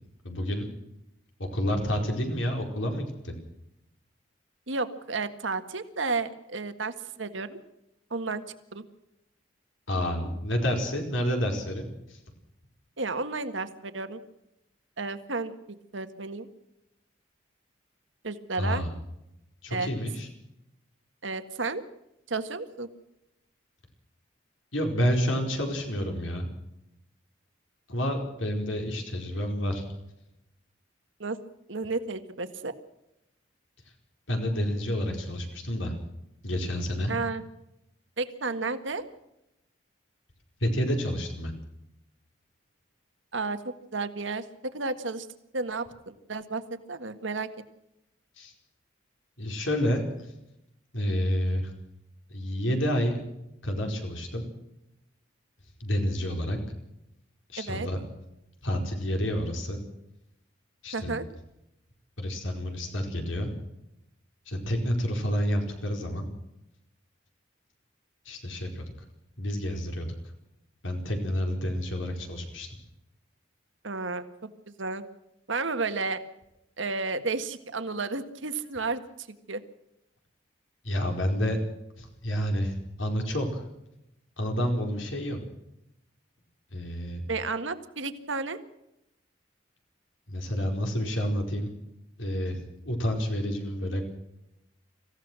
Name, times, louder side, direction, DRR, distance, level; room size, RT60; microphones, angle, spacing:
voice 1, 0.2-0.7 1.4-3.4 9.9-12.2 18.6-18.9 19.6-20.3 24.7-26.5 27.9-29.8 34.3-35.9 36.4-37.1 40.6-41.5 48.4-48.5 49.4-50.3 50.9-51.7 52.3-53.3 53.6-54.4 55.8-56.6 57.5-58.0 58.6-59.8 60.8-61.1 62.2-63.5 64.5-66.3 68.2-68.9 69.4-70.1 70.8-72.7 80.8-81.6 82.0-83.6 84.4-85.4 86.7-87.2 90.3-91.7 92.2-92.6 92.8-94.1, equal, 85° left, 3 dB, 4.8 m, -29 dB
voice 2, 4.7-7.6 8.1-8.4 8.7-8.8 13.0-14.2 15.0-15.5 15.9-16.5 18.2-18.8 19.7-19.9 21.2-21.8 22.3-22.9 31.2-31.4 31.7-32.7 37.1-37.4 38.2-39.0 43.3-43.6 43.9-44.4 44.7-45.3 45.5-46.6 46.9-47.5 57.6-57.9 60.9-61.2 73.8-74.2 74.8-75.0 75.5-76.2 76.8-79.6 87.3-88.6, right 3 dB, 80° right, 9 dB, 1.7 m, -32 dB
26.0 x 16.0 x 6.2 m, 0.86 s
head